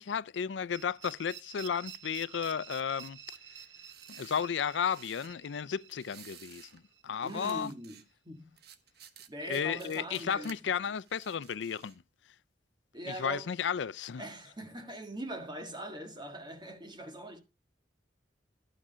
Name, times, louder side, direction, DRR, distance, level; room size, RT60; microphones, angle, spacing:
voice 1, 0.0-3.2 4.1-7.7 9.4-12.0 13.1-14.2, left 7 dB, 85° left, 0.4 m, -33 dB
sound 1, 0.7-7.5, right 9 dB, 85° right, 1.1 m, -50 dB
sound 2, 3.6-5.4 5.9-6.8 7.1-8.0 8.6-10.6 10.9-12.0, right 8 dB, 60° right, 1.2 m, -54 dB
voice 2, 7.2-8.5 9.3-10.6 12.9-13.5 14.2-17.4, right 1 dB, 25° right, 1.7 m, -42 dB
12.5 x 6.0 x 5.6 m
head